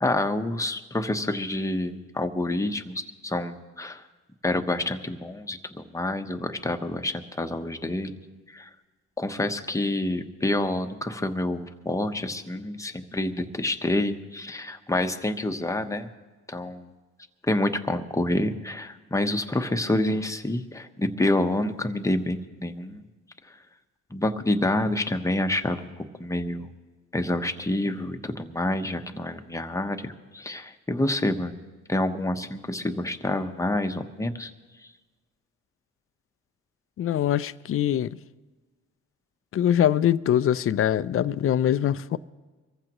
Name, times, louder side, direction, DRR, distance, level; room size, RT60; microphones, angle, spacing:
voice 1, 0.0-4.0 4.4-8.1 8.5-8.7 9.2-16.1 16.5-16.9 17.4-23.0 23.5-23.6 24.1-25.9 26.2-26.7 27.1-31.6 31.9-34.5, left 1 dB, 10° left, 1.0 m, -28 dB
voice 2, 37.0-38.2 39.5-42.2, left 10 dB, 45° left, 0.5 m, -23 dB
24.0 x 15.0 x 3.0 m
cardioid pair, 90°, 30 cm